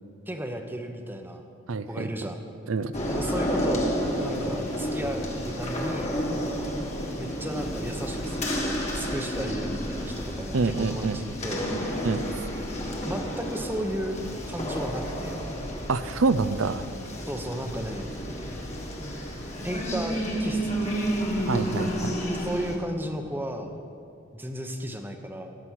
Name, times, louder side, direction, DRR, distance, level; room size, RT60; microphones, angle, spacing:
voice 1, 0.3-1.4 1.9-2.4 3.1-3.8 4.2-6.2 7.2-11.7 13.0-14.2 14.5-15.4 17.2-18.1 19.6-21.1 22.3-23.8 24.3-25.5, right 1 dB, 10° right, 5 dB, 0.9 m, -34 dB
voice 2, 1.7-2.1 2.7-2.9 10.5-11.2 12.0-12.2 15.9-16.8 21.4-22.1, right 4 dB, 75° right, 13 dB, 0.6 m, -26 dB
sound 1, 2.9-22.8, equal, 35° left, 1.7 m, -31 dB
17.5 x 7.6 x 6.3 m, 2.5 s
head